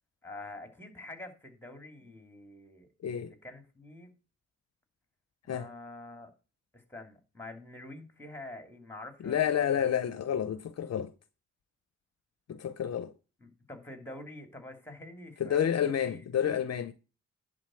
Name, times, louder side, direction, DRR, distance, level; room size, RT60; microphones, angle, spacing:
voice 1, 0.2-2.9 3.2-4.1 5.5-6.3 6.7-9.9 13.4-16.2, left 2 dB, 5° left, 2.8 m, -47 dB
voice 2, 3.0-3.3 5.5-5.7 9.2-11.1 12.5-13.1 15.4-16.9, left 9 dB, 60° left, 0.7 m, -29 dB
11.0 x 4.0 x 7.6 m
cardioid pair, 80°, 29 cm